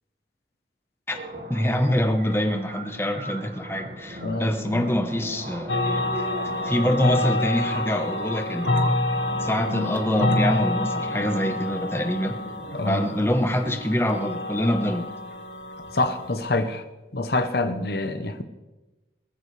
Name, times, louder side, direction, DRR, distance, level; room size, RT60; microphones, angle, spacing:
sound 1, 1.1-15.1, equal, 50° right, 1.7 m, -36 dB
voice 1, 1.5-6.3 6.6-8.9 9.4-12.4 12.9-15.1, equal, 15° left, 5 dB, 1.0 m, -25 dB
sound 2, 5.7-16.4, left 2 dB, 85° left, 1.7 m, -28 dB
voice 2, 15.9-16.8 17.1-18.4, left 2 dB, 60° left, 9 dB, 0.9 m, -26 dB
20.5 x 14.5 x 3.3 m, 1.1 s
head